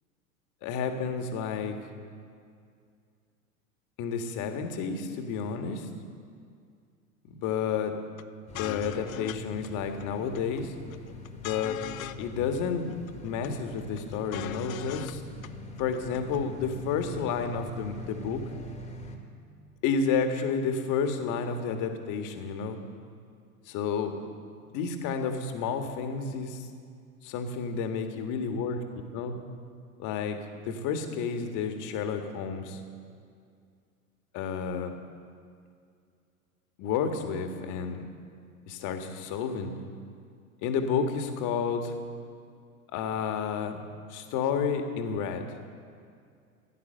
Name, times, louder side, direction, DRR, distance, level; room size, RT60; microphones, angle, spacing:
voice 1, 0.6-1.8 4.0-5.9 7.3-8.0 8.5-10.7 11.4-11.8 12.2-12.9 13.2-15.2 15.8-18.4 19.8-22.8 23.7-24.1 24.7-26.7 27.2-28.8 29.1-29.3 30.0-30.4 30.6-32.8 34.3-35.0 36.8-38.1 38.7-39.7 40.6-41.9 42.9-43.8 44.1-45.5, left 6 dB, 45° left, 6 dB, 1.8 m, -30 dB
sound 1, 8.2-8.3 8.5-9.4 9.6-9.7 10.0-10.6 10.9-12.3 12.5-12.6 12.9-13.5 13.8-15.1 15.4-15.5 15.8-16.4, left 13 dB, 65° left, 0.7 m, -40 dB
sound 2, 8.5-19.2, equal, 15° left, 1.8 m, -42 dB
16.0 x 11.0 x 6.7 m, 2.3 s
figure-of-eight pair, 90°, 44 cm